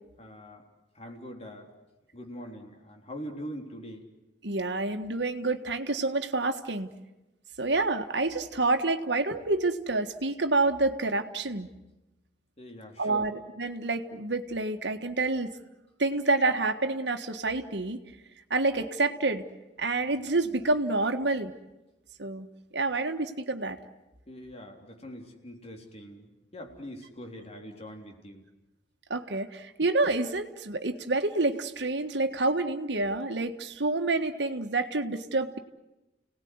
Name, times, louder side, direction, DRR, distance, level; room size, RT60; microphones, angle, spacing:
voice 1, 0.2-0.6 0.9-1.7 2.1-4.1 12.6-13.3 24.3-28.4, equal, 35° left, 2 dB, 3.7 m, -43 dB
voice 2, 4.4-6.9 7.6-11.7 13.0-15.5 16.0-18.0 18.5-19.4 19.8-21.5 22.2-22.5 22.7-23.8 29.1-35.6, right 2 dB, 75° right, 6 dB, 1.6 m, -28 dB
30.0 x 18.5 x 9.6 m, 1.0 s
head